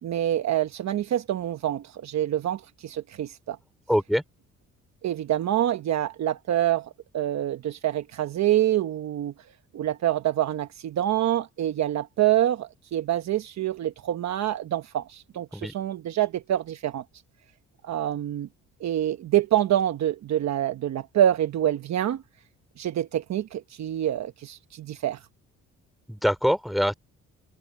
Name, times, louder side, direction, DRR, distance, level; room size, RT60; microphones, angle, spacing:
voice 1, 0.0-3.6 5.0-9.3 9.7-17.0 17.8-18.5 18.8-22.2 22.8-25.2, right 12 dB, 65° right, 1.1 m, -26 dB
voice 2, 3.9-4.2 15.5-15.7 26.1-26.9, equal, ahead, 3.9 m, -24 dB
cardioid pair, 90°, 30 cm